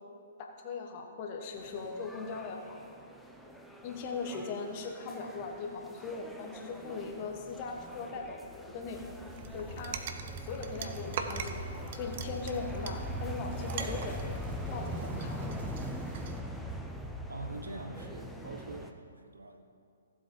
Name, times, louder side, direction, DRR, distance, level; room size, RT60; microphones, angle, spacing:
voice 1, 0.4-2.8 3.8-9.0 9.5-10.0 10.4-11.6 11.9-14.2 14.7-15.5, left 4 dB, 35° left, 3 dB, 1.3 m, -39 dB
sound 1, 1.5-18.9, equal, ahead, 0.6 m, -42 dB
sound 2, 9.3-16.4, right 6 dB, 45° right, 0.7 m, -43 dB
voice 2, 17.3-19.6, right 2 dB, 75° right, 4 dB, 1.1 m, -44 dB
15.5 x 7.7 x 3.2 m, 2.4 s
figure-of-eight pair, 125°, 0 cm